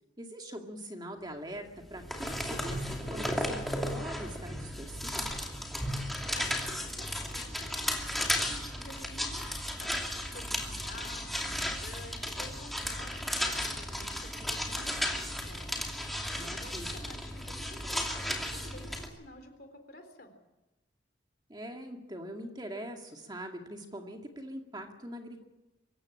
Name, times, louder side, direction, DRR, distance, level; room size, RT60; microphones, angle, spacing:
voice 1, 0.2-5.3 16.4-16.9 21.5-25.4, equal, 20° right, 3 dB, 2.2 m, -43 dB
sound 1, 1.8-19.1, equal, ahead, 2.7 m, -35 dB
voice 2, 6.1-15.8 16.4-20.4, left 2 dB, 50° left, 6 dB, 3.8 m, -51 dB
24.5 x 14.5 x 8.7 m, 1.0 s
head